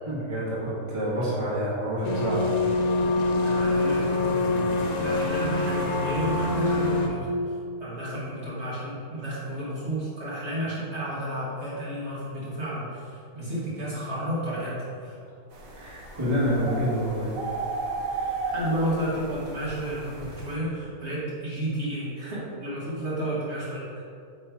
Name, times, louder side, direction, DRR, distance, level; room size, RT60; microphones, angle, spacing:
voice 1, 0.0-2.4 15.8-17.3, equal, 20° right, -8 dB, 1.6 m, -27 dB
sound 1, 2.0-7.1, left 2 dB, 45° left, 0.5 m, -25 dB
voice 2, 3.4-4.7 5.0-7.5 7.8-15.2 18.1-24.0, right 1 dB, 45° right, -9 dB, 1.7 m, -32 dB
sound 2, 15.5-20.5, right 3 dB, 65° right, 1.4 m, -34 dB
8.0 x 3.3 x 4.7 m, 2.5 s
omnidirectional pair, 1.6 m